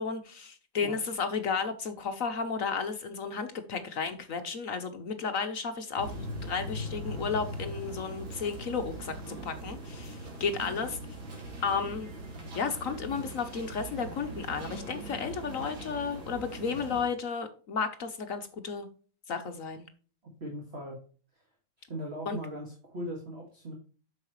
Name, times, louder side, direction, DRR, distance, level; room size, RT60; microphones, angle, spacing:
voice 1, 0.0-11.0 11.6-12.1 12.5-18.9 19.3-19.9 22.3-22.4, left 5 dB, 60° left, 8 dB, 0.9 m, -33 dB
sound 1, 6.0-17.1, right 1 dB, 90° right, 3.1 m, -40 dB
voice 2, 20.4-21.0 21.3-21.4 21.9-23.7, equal, 35° right, -1 dB, 2.1 m, -39 dB
8.7 x 6.4 x 3.0 m, 0.39 s
omnidirectional pair, 2.1 m